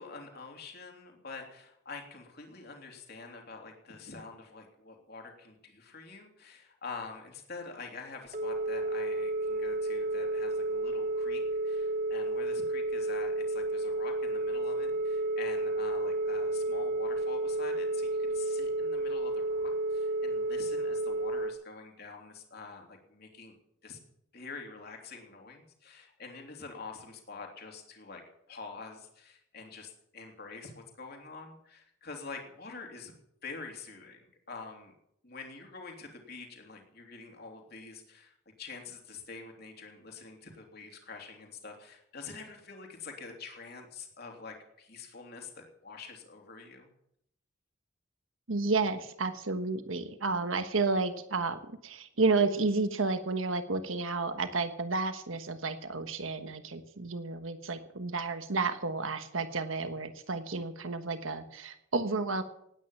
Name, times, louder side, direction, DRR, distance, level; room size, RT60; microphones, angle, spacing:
voice 1, 0.0-23.5 23.8-24.0 24.3-28.2 28.5-33.1 33.4-34.9 35.2-46.9, left 4 dB, 50° left, 2 dB, 3.3 m, -46 dB
Telephone, 8.3-21.5, right 2 dB, 40° right, 1.2 m, -31 dB
voice 2, 48.5-62.4, right 3 dB, 85° right, 9 dB, 1.3 m, -31 dB
18.5 x 9.8 x 7.2 m, 0.75 s
head